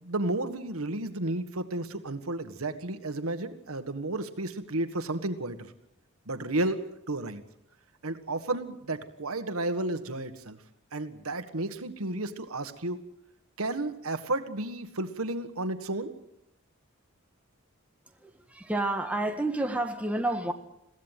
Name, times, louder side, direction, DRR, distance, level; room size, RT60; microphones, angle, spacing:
voice 1, 0.0-5.7 6.3-7.4 8.0-10.6 10.9-13.0 13.6-16.1, right 2 dB, 90° right, 1.7 m, -32 dB
voice 2, 18.2-20.5, right 2 dB, 5° right, 1.7 m, -30 dB
22.5 x 16.0 x 9.2 m
head